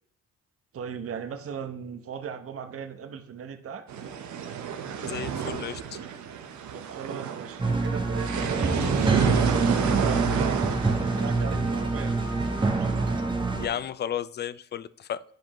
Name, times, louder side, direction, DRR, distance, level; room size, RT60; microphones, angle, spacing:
voice 1, 0.7-3.9 6.7-12.5, right 7 dB, 50° right, 8 dB, 0.9 m, -38 dB
sound 1, 3.9-13.2, right 7 dB, 75° right, 0.9 m, -31 dB
voice 2, 5.0-6.0 13.6-15.2, left 9 dB, 35° left, 17 dB, 0.4 m, -33 dB
sound 2, 7.6-13.7, right 3 dB, 15° right, 1.0 m, -26 dB
10.5 x 5.1 x 3.0 m, 0.68 s
cardioid pair, 90°, 30 cm